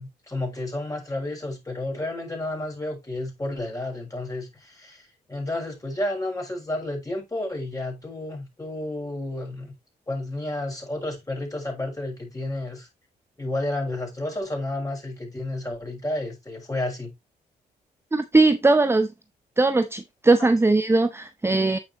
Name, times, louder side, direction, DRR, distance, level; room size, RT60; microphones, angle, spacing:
voice 1, 0.0-9.7 10.1-12.9 13.4-17.1, left 1 dB, 20° left, 6.0 m, -31 dB
voice 2, 18.1-19.1 19.6-21.8, right 3 dB, 15° right, 0.6 m, -19 dB
8.9 x 5.9 x 2.9 m
supercardioid pair, 50°, 18 cm